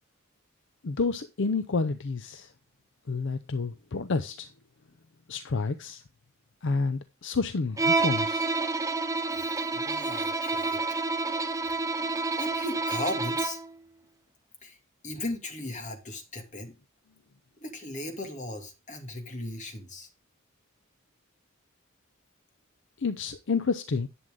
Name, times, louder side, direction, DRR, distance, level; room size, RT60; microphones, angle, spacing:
voice 1, 0.8-2.5 3.1-4.5 5.3-6.0 6.6-8.6 23.0-24.1, left 4 dB, 60° left, 0.6 m, -29 dB
Bowed string instrument, 7.8-13.7, right 3 dB, 15° right, 0.7 m, -29 dB
voice 2, 9.3-10.8 11.7-11.8 12.4-13.6 14.6-14.8 15.0-16.8 17.6-20.1, left 1 dB, 35° left, 2.3 m, -37 dB
11.0 x 7.9 x 3.7 m
head